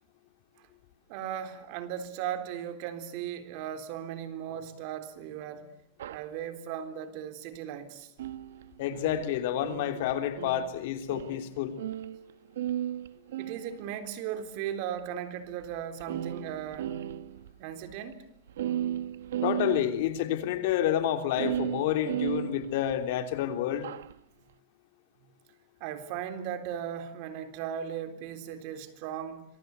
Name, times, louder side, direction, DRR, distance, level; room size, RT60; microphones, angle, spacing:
voice 1, 1.1-5.7 6.1-8.1 13.2-17.0 17.6-18.3 25.8-29.5, right 9 dB, 50° right, 3.7 m, -37 dB
sound 1, 6.0-6.3 8.2-12.3 12.6-14.1 15.0-15.1 15.6-15.7 16.0-17.5 17.8-17.9 18.1-18.2 18.5-20.2 21.4-23.1 23.7-24.1, right 11 dB, 85° right, 1.3 m, -35 dB
voice 2, 8.8-11.7 19.4-23.9, left 11 dB, 60° left, 3.2 m, -29 dB
26.5 x 24.0 x 8.2 m
supercardioid pair, 155°, 0 cm